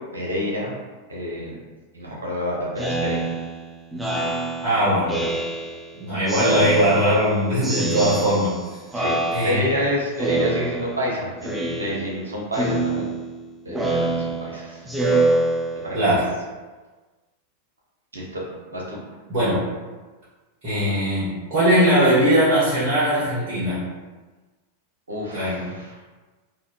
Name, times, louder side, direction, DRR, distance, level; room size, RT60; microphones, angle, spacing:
voice 1, 0.1-0.7 1.1-1.5 1.9-3.3 8.9-13.1 13.6-14.9 15.7-16.0 18.1-18.4 18.7-19.0 25.1-25.9, equal, 75° right, -4 dB, 0.9 m, -28 dB
Speech synthesizer, 2.8-5.9 6.3-7.3 7.6-8.6 8.9-9.8 10.2-11.1 11.4-12.2 12.5-16.1, right 2 dB, 10° right, 0.4 m, -26 dB
voice 2, 4.6-5.3 6.0-8.6 9.3-9.6 15.9-16.3 19.3-19.6 20.6-23.8 25.3-25.7, equal, 40° right, -12 dB, 1.4 m, -20 dB
3.6 x 2.6 x 2.3 m, 1.3 s
figure-of-eight pair, 90°, 0 cm